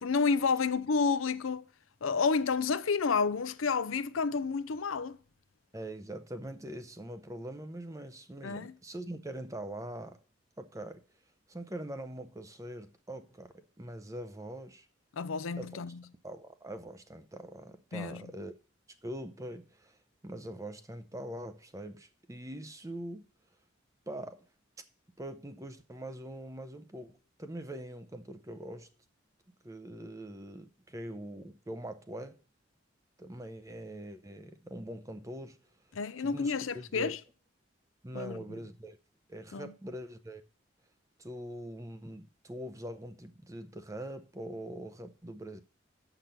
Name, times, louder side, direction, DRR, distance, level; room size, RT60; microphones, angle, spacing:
voice 1, 0.0-1.6 2.0-5.2 8.4-8.7 15.2-15.9 17.9-18.3 35.9-37.2 38.1-38.4 39.5-39.7, left 5 dB, 85° left, 0.6 m, -30 dB
voice 2, 5.7-10.2 10.6-11.0 11.5-14.9 15.6-15.8 16.2-18.5 19.0-20.0 20.2-23.3 24.1-24.4 25.2-28.9 29.6-32.4 33.2-35.6 36.2-37.2 38.0-39.0 39.3-40.4 41.2-45.6, right 1 dB, 15° right, 0.6 m, -43 dB
7.4 x 6.0 x 6.8 m
head